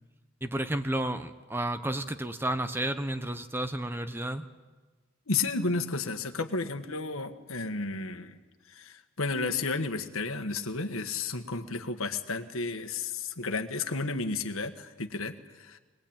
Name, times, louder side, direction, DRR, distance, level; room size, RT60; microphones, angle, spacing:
voice 1, 0.4-4.4, right 1 dB, 10° right, 9 dB, 0.9 m, -31 dB
voice 2, 5.3-8.4 8.7-15.8, left 3 dB, 80° left, 7 dB, 1.6 m, -32 dB
23.0 x 20.5 x 8.9 m, 1.2 s
head